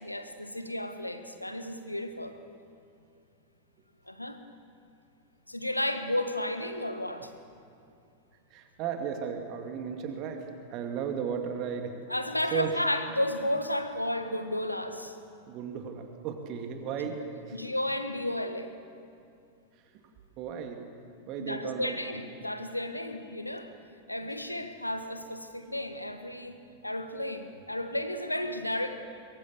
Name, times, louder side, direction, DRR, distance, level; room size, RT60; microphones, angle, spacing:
voice 1, 0.0-2.4 4.1-4.4 5.5-7.3 12.1-15.2 17.5-18.7 21.4-23.7 24.1-29.0, left 1 dB, 85° left, 8 dB, 1.5 m, -33 dB
voice 2, 8.5-12.0 12.5-12.8 15.5-17.6 20.4-20.8 21.3-22.0, right 7 dB, 40° right, 5 dB, 2.2 m, -35 dB
23.5 x 23.0 x 6.9 m, 2.5 s
figure-of-eight pair, 90°, 0 cm